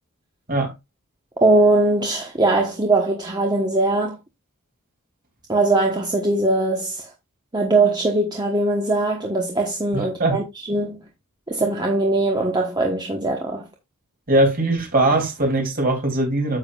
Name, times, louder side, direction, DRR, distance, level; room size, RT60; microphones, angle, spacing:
voice 1, 1.4-4.2 5.5-7.1 7.5-11.0 11.5-13.7, right 2 dB, 20° right, 1.2 m, -20 dB
voice 2, 9.9-10.4 14.3-16.6, right 2 dB, 40° right, 3.1 m, -20 dB
9.8 x 7.2 x 2.4 m
head